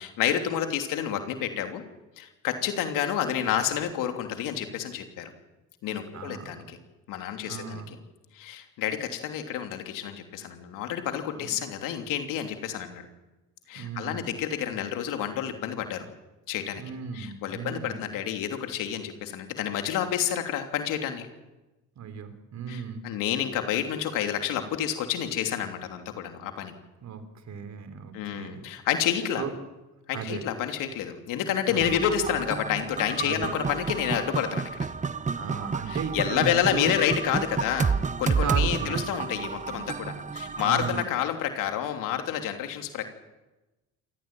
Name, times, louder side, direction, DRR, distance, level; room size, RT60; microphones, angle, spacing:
voice 1, 0.0-1.8 2.2-5.3 5.8-6.8 7.1-7.8 8.3-13.1 13.7-16.0 16.5-16.8 17.1-21.3 22.7-26.7 28.1-29.4 30.1-34.9 35.9-43.1, left 10 dB, 75° left, 5 dB, 3.1 m, -29 dB
voice 2, 6.1-6.7 7.4-7.9 11.4-11.5 13.8-14.3 16.8-18.0 22.0-23.1 27.0-28.7 29.4-29.5 30.1-30.5 31.7-32.0 33.2-33.6 35.3-36.9 38.4-39.0 40.5-41.0, right 6 dB, 55° right, 9 dB, 3.6 m, -36 dB
sound 1, 31.8-41.0, right 5 dB, 20° right, 0.9 m, -30 dB
27.5 x 14.5 x 9.1 m, 1.1 s
supercardioid pair, 75°, 33 cm